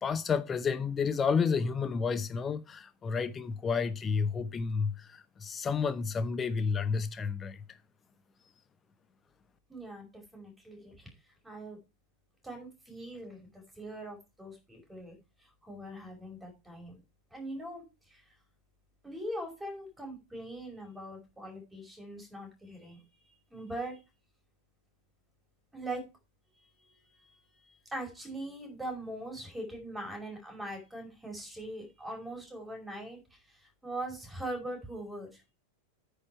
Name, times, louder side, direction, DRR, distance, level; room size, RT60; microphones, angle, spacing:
voice 1, 0.0-7.8, left 5 dB, 20° left, 0.8 m, -31 dB
voice 2, 9.7-11.1 11.4-11.8 12.4-17.0 17.3-18.3 19.0-24.0 25.7-26.0 26.6-35.4, right 1 dB, 5° right, 5.6 m, -42 dB
9.7 x 7.0 x 4.5 m
figure-of-eight pair, 90°, 0 cm